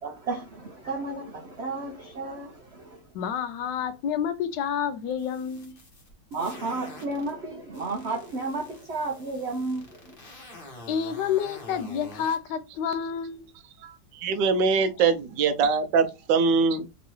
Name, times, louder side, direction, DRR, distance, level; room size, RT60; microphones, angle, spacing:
voice 1, 0.0-3.0 6.3-10.2, right 3 dB, 65° right, 0.6 m, -33 dB
voice 2, 3.1-5.8 10.9-13.5, left 8 dB, 75° left, 1.3 m, -29 dB
sound 1, 5.1-7.3 7.7-12.4, left 2 dB, 35° left, 1.2 m, -46 dB
voice 3, 13.8-16.9, right 5 dB, 80° right, 1.3 m, -23 dB
3.5 x 3.0 x 3.1 m
omnidirectional pair, 2.0 m